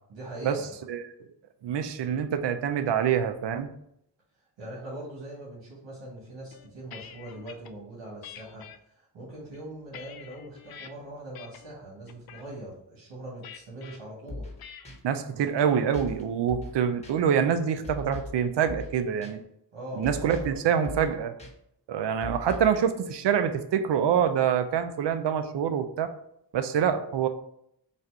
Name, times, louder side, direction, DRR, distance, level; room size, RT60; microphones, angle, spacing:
voice 1, 0.1-0.7 4.6-14.5 15.3-15.4 19.7-20.8, right 1 dB, 90° right, -6 dB, 1.4 m, -42 dB
voice 2, 1.6-3.7 15.0-19.4 20.0-21.3 21.9-26.1 26.5-27.3, right 8 dB, 70° right, 8 dB, 0.6 m, -26 dB
sound 1, 6.5-7.7 8.2-8.8 9.4-10.9 11.3-11.7 12.1-12.5 13.4-14.0 14.6-15.0, left 8 dB, 55° left, 0.5 m, -46 dB
sound 2, 14.3-14.6 14.8-15.0 15.9-16.2 16.5-16.8 17.0-17.1 17.8-18.4 18.7-18.9 19.2-19.3 20.0-20.6 20.8-21.1 21.4-21.5 22.2-22.8, left 2 dB, 15° left, 1.1 m, -39 dB
4.1 x 2.5 x 4.5 m, 0.74 s
cardioid pair, 65°, 43 cm